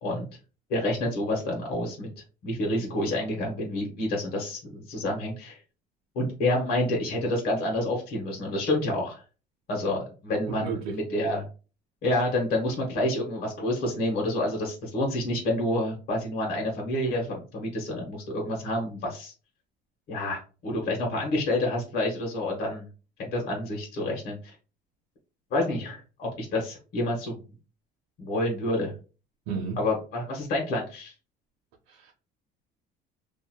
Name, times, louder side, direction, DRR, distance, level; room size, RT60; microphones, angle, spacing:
voice 1, 0.7-2.1 2.4-5.6 6.1-9.2 9.7-11.5 12.0-19.3 20.1-22.9 23.2-24.5 25.5-27.3 28.2-28.9 29.8-31.1, left 1 dB, 55° left, 1.0 m, -28 dB
voice 2, 10.5-11.0 29.5-29.8 31.9-32.1, right 6 dB, 85° right, 0.7 m, -32 dB
2.8 x 2.5 x 2.2 m
cardioid pair, 145°, 19 cm